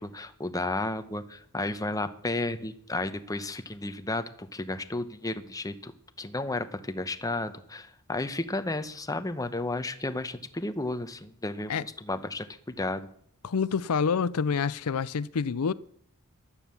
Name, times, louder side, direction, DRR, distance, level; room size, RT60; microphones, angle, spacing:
voice 1, 0.0-5.9 6.2-13.1, left 2 dB, 15° left, 1.0 m, -33 dB
voice 2, 13.4-15.7, left 5 dB, 80° left, 0.5 m, -27 dB
15.0 x 12.0 x 7.1 m
head